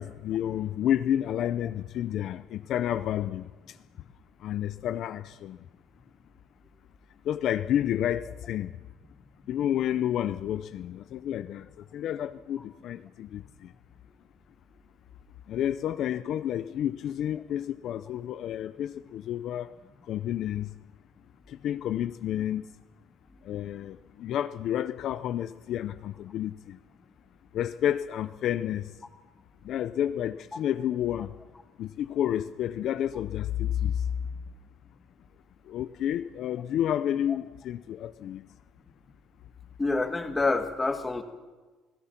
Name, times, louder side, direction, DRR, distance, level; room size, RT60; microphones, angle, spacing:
voice 1, 0.0-3.8 4.4-5.6 7.2-8.7 9.5-13.7 15.5-19.7 20.0-20.7 21.5-22.7 23.4-26.8 27.5-29.0 29.6-31.3 31.8-34.1 35.6-38.4, left 11 dB, 55° left, 11 dB, 0.6 m, -30 dB
voice 2, 39.8-41.2, left 3 dB, 15° left, 6 dB, 1.7 m, -27 dB
29.0 x 17.5 x 5.9 m, 1.3 s
cardioid pair, 145°, 0 cm